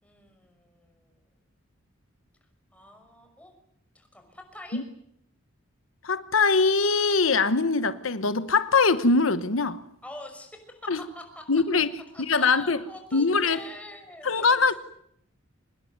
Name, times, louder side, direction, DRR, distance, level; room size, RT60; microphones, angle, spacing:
voice 1, 0.0-1.1 2.7-3.5 3.9-4.8 10.0-11.5 12.1-14.8, left 1 dB, 5° left, 5.8 m, -45 dB
voice 2, 6.0-9.8 10.9-11.0 11.5-11.9 12.2-12.8 13.1-13.6 14.2-14.7, left 4 dB, 80° left, 1.1 m, -22 dB
25.5 x 20.5 x 9.4 m
head